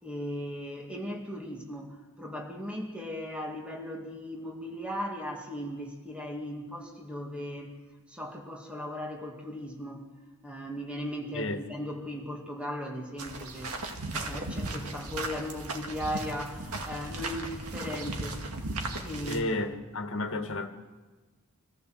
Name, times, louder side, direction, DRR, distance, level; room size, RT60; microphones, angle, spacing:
voice 1, 0.0-7.7 8.1-10.1 10.4-13.7 14.1-18.4 19.0-19.5, equal, 5° right, 2.3 m, -37 dB
sound 1, 13.2-19.4, right 2 dB, 80° right, 2.1 m, -36 dB
voice 2, 19.3-20.7, left 2 dB, 60° left, 1.7 m, -32 dB
24.0 x 15.0 x 7.8 m
head